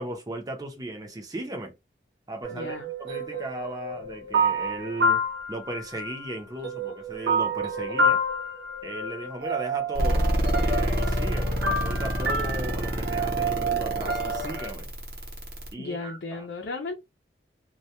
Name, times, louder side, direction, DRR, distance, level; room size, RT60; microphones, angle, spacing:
voice 1, 0.0-1.7 2.3-5.2 5.5-8.2 8.8-14.9 15.7-16.4, right 1 dB, 20° right, 0.6 m, -36 dB
sound 1, 2.4-6.3 6.6-14.7, right 1 dB, 80° right, 0.8 m, -29 dB
voice 2, 2.5-2.9 15.8-16.9, left 3 dB, 85° left, 0.5 m, -35 dB
sound 2, 9.9-15.7, equal, 55° right, 0.8 m, -27 dB
2.2 x 2.1 x 2.8 m
head